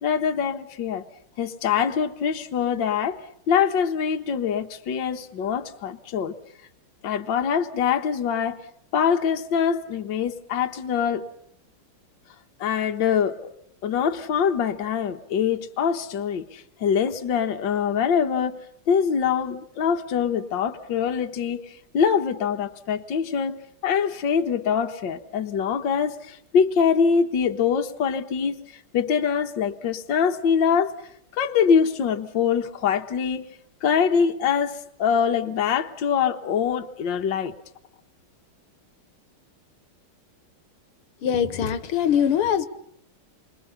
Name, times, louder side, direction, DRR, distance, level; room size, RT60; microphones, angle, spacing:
voice 1, 0.0-1.0 1.4-3.2 3.5-6.3 7.0-8.6 8.9-11.2 12.6-13.5 13.8-18.6 18.9-23.6 23.8-30.9 31.3-33.5 33.8-37.5, left 7 dB, 60° left, 5 dB, 1.9 m, -24 dB
voice 2, 41.2-42.7, left 8 dB, 80° left, 12 dB, 2.1 m, -22 dB
29.0 x 25.0 x 5.6 m, 0.72 s
omnidirectional pair, 2.4 m